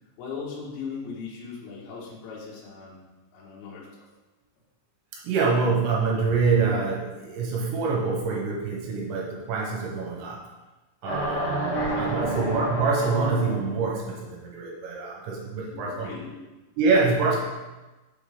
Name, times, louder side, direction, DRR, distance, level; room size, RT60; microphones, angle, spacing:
voice 1, 0.2-3.0 3.3-4.1 11.9-12.3 15.6-16.4, left 5 dB, 75° left, -6 dB, 3.4 m, -39 dB
voice 2, 5.1-10.4 11.0-16.1 16.8-17.4, right 4 dB, 80° right, -2 dB, 3.4 m, -25 dB
sound 1, 11.0-13.9, right 1 dB, 55° left, 1.8 m, -29 dB
6.9 x 5.8 x 3.4 m, 1.1 s
omnidirectional pair, 5.3 m